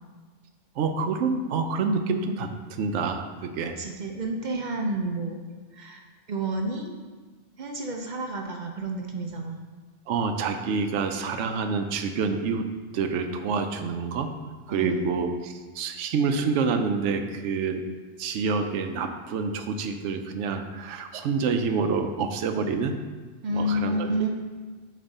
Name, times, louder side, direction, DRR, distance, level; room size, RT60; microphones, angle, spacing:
voice 1, 0.8-3.7 10.1-12.7 12.9-14.3 14.7-17.8 18.2-23.0 23.5-24.1, right 5 dB, 80° right, 7 dB, 0.9 m, -27 dB
voice 2, 3.8-5.4 5.7-6.0 6.3-7.0 7.6-9.6 14.7-15.1 23.4-24.3, right 1 dB, 50° right, 2 dB, 0.6 m, -30 dB
8.6 x 3.2 x 4.0 m, 1.3 s
omnidirectional pair, 1.2 m